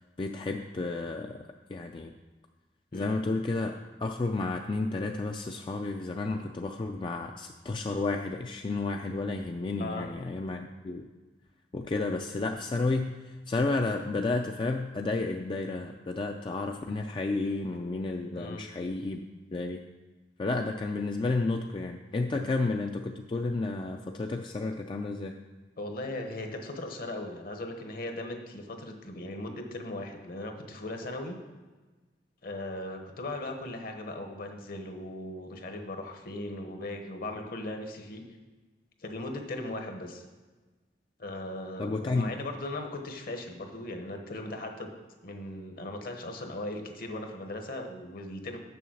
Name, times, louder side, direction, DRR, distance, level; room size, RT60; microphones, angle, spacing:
voice 1, 0.2-1.4 1.7-2.1 2.9-3.7 4.0-11.0 11.7-19.3 19.5-19.8 20.4-25.3 41.8-42.3, left 3 dB, 30° left, 3 dB, 0.4 m, -31 dB
voice 2, 18.3-18.6 22.3-22.5 25.8-31.4 32.4-38.2 39.0-40.2 41.2-44.9 45.2-48.6, left 1 dB, 60° left, 4 dB, 1.1 m, -38 dB
6.9 x 6.4 x 6.3 m, 1.3 s
head